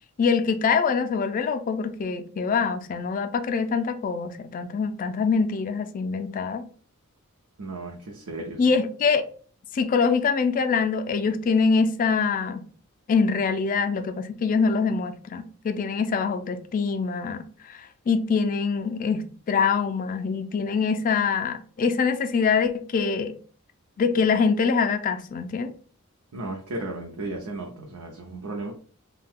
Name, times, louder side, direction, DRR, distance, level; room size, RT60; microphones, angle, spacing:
voice 1, 0.2-6.6 8.6-9.2 9.7-12.6 13.1-17.8 18.1-23.4 24.0-25.7, left 5 dB, 40° left, 0.3 m, -24 dB
voice 2, 7.6-8.6 26.3-28.7, right 2 dB, 90° right, 0.6 m, -34 dB
2.6 x 2.2 x 3.4 m
head